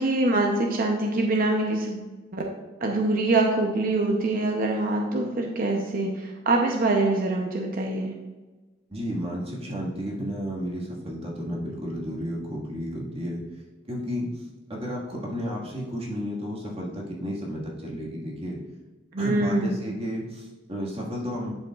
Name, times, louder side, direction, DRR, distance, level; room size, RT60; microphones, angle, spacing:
voice 1, 0.0-2.4 2.8-8.1 19.1-19.8, right 2 dB, 50° right, 1 dB, 0.7 m, -24 dB
voice 2, 8.9-13.4 13.9-14.4 14.7-18.6 19.2-21.5, equal, 30° right, -3 dB, 1.7 m, -32 dB
11.0 x 5.3 x 2.4 m, 1.2 s
head